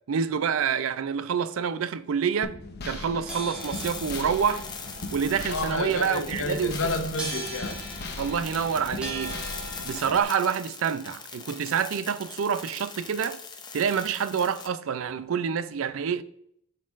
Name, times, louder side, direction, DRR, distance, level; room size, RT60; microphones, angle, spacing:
voice 1, 0.1-2.6 2.8-4.6 5.1-6.8 8.2-9.4 9.8-13.4 13.7-16.2, right 7 dB, 80° right, 0.4 m, -27 dB
sound 1, 2.4-10.2, left 2 dB, 50° left, 0.8 m, -39 dB
sound 2, 3.3-10.2, right 1 dB, 5° right, 1.3 m, -40 dB
sound 3, 3.6-14.7, left 5 dB, 20° left, 0.6 m, -41 dB
voice 2, 5.5-7.8, left 2 dB, 80° left, 0.9 m, -30 dB
11.0 x 4.2 x 2.5 m
head